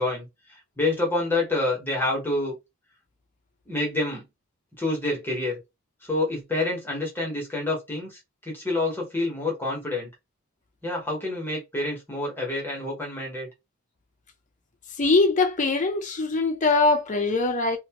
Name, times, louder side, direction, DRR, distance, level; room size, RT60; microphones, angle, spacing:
voice 1, 0.0-2.5 3.7-4.2 4.8-5.6 6.0-10.1 10.8-13.5, left 2 dB, 10° left, 1.0 m, -28 dB
voice 2, 15.0-17.8, left 3 dB, 35° left, 0.6 m, -22 dB
2.8 x 2.2 x 2.8 m
head